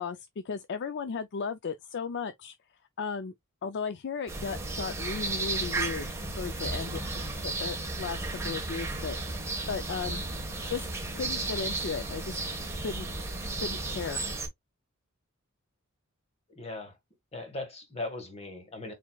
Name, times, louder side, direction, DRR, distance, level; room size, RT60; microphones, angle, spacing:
voice 1, 0.0-2.5 3.0-3.3 3.6-7.0 7.4-10.2 10.7-10.8 11.1-12.4 12.8-13.1 13.6-14.2, left 5 dB, 55° left, 0.4 m, -35 dB
sound 1, 4.3-14.5, right 2 dB, 15° right, 1.3 m, -34 dB
voice 2, 16.5-17.0 17.3-18.9, left 2 dB, 30° left, 1.5 m, -38 dB
7.3 x 2.8 x 2.3 m
head